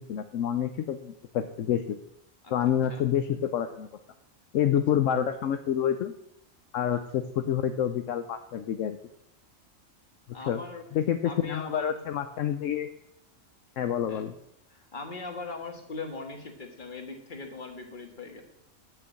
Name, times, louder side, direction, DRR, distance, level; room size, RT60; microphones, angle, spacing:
voice 1, 0.1-2.0 2.5-3.9 4.5-6.1 6.7-9.0 10.3-10.6 10.9-12.9 13.8-14.3, left 9 dB, 70° left, 8 dB, 1.0 m, -28 dB
voice 2, 10.3-10.8 11.2-12.0 14.1-14.2 14.7-18.4, left 3 dB, 40° left, 4 dB, 1.7 m, -40 dB
8.9 x 6.8 x 7.6 m, 0.77 s
omnidirectional pair, 1.4 m